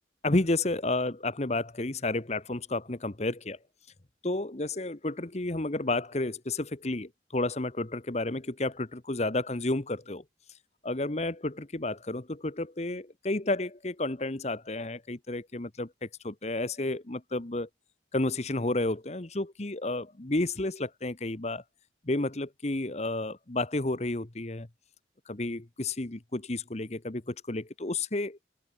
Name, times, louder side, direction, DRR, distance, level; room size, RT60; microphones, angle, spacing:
voice 1, 0.2-3.6 4.2-10.2 10.8-17.7 18.1-21.6 22.1-24.7 25.3-28.5, left 2 dB, 35° left, 1.1 m, -31 dB
head